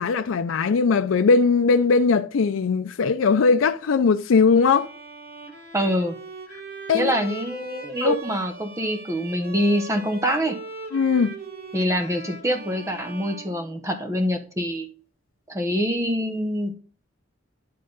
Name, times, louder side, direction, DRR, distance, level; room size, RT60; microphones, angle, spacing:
voice 1, 0.0-4.9 6.9-7.1 8.0-8.2 10.9-11.4, left 4 dB, 90° left, 0.4 m, -19 dB
Bowed string instrument, 4.5-14.2, right 3 dB, 50° right, 1.4 m, -40 dB
voice 2, 5.7-6.1 6.9-10.6 11.7-14.9 15.5-16.7, equal, 15° right, 0.9 m, -25 dB
10.5 x 3.7 x 3.9 m
head